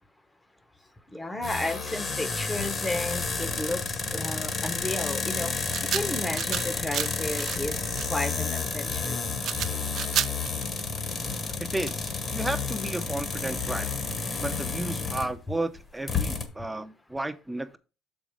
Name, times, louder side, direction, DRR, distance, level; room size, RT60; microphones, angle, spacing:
voice 1, 1.1-5.5 5.9-9.2, left 1 dB, 15° left, 1.0 m, -33 dB
sound 1, 1.4-15.4 15.8-15.9 16.1-16.5, left 4 dB, 35° left, 1.6 m, -31 dB
sound 2, 3.6-13.7 14.1-14.2, right 10 dB, 60° right, 0.5 m, -34 dB
voice 2, 11.6-13.9 14.4-17.8, right 1 dB, 10° right, 0.7 m, -33 dB
6.8 x 5.3 x 4.9 m
cardioid pair, 100°, 0 cm